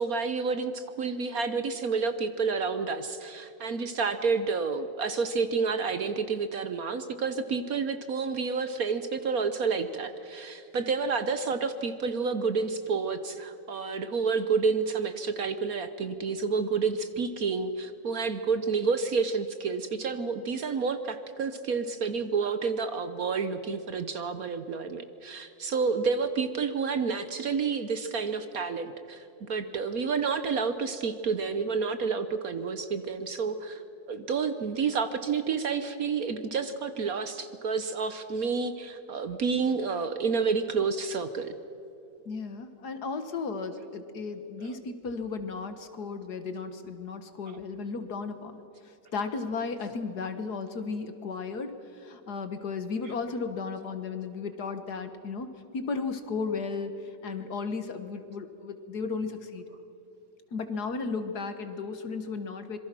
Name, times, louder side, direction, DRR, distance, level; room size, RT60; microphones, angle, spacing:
voice 1, 0.0-33.8 34.1-41.6 44.6-44.7, right 5 dB, 55° right, 10 dB, 1.2 m, -29 dB
voice 2, 42.3-48.5 48.8-56.9 57.2-59.6 60.5-62.8, left 4 dB, 55° left, 9 dB, 1.9 m, -35 dB
26.0 x 22.5 x 6.1 m, 2.9 s
omnidirectional pair, 2.1 m